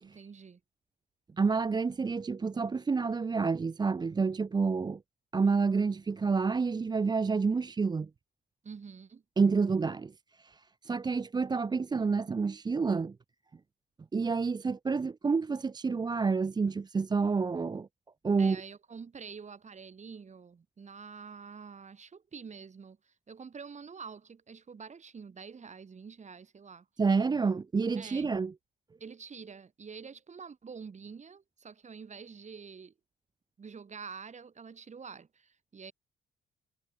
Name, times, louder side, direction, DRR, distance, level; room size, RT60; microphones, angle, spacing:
voice 1, 0.0-0.6 8.6-9.2 18.4-26.9 28.0-28.3 29.0-32.9 33.6-35.9, right 5 dB, 35° right, 2.2 m, -47 dB
voice 2, 1.4-5.0 5.3-8.1 9.4-13.2 14.1-17.9 18.2-18.6 27.0-28.5, right 4 dB, 20° right, 0.5 m, -29 dB
cardioid pair, 90°, 20 cm